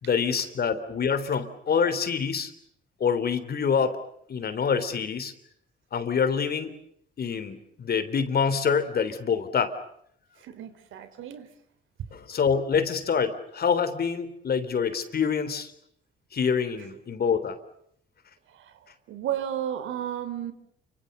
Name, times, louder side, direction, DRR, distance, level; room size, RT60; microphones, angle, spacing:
voice 1, 0.0-2.5 3.0-4.0 4.3-5.3 5.9-6.7 7.2-9.7 12.1-15.7 16.3-17.6, left 6 dB, 50° left, 11 dB, 3.6 m, -26 dB
voice 2, 10.4-11.5 16.8-16.9 18.5-18.8 19.1-20.5, right 10 dB, 80° right, 11 dB, 3.8 m, -33 dB
29.0 x 26.0 x 6.8 m, 0.70 s
cardioid pair, 90°, 20 cm